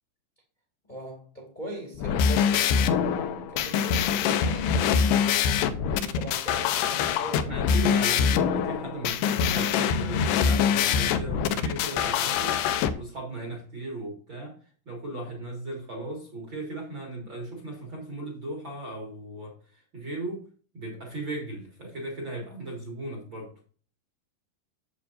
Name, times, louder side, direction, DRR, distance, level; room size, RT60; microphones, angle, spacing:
voice 1, 0.9-4.9 5.8-7.7 8.3-8.4, right 1 dB, 20° left, 1.2 m, -40 dB
sound 1, 2.0-12.9, left 7 dB, 80° left, 2.8 m, -24 dB
voice 2, 7.3-12.6 12.9-14.6 14.9-20.5 20.7-23.5, right 2 dB, 40° right, 1.9 m, -37 dB
9.2 x 7.9 x 2.6 m
omnidirectional pair, 4.9 m